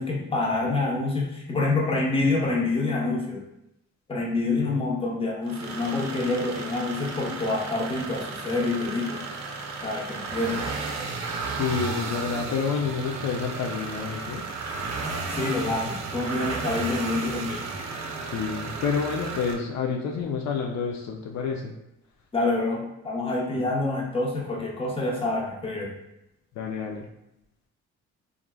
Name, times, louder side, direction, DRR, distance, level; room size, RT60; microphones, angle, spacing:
voice 1, 0.0-3.4 4.1-9.2 9.8-10.7 15.3-17.6 22.3-25.9, left 2 dB, 20° left, -3 dB, 0.7 m, -27 dB
sound 1, 5.5-19.5, right 4 dB, 60° right, 0.5 m, -34 dB
voice 2, 11.6-14.5 18.3-21.7 23.5-23.6 26.6-27.1, left 5 dB, 65° left, 0 dB, 0.4 m, -29 dB
3.1 x 2.4 x 2.2 m, 0.83 s
cardioid pair, 90°, 30 cm